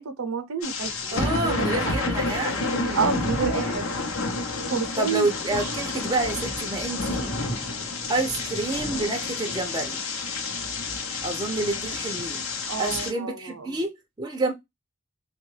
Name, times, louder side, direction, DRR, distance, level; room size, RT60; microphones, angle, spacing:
voice 1, 0.0-2.0 2.9-3.9 4.7-5.3 5.5-5.7 12.7-13.8, right 5 dB, 70° right, 0.6 m, -29 dB
sound 1, 0.6-13.1, left 3 dB, 65° left, 0.7 m, -30 dB
sound 2, 0.8-9.0, right 1 dB, 15° left, 0.8 m, -43 dB
voice 2, 1.1-3.3 5.0-7.3 8.1-10.0 11.2-12.5 12.8-14.5, right 2 dB, 20° right, 0.5 m, -28 dB
3.4 x 2.3 x 3.1 m
head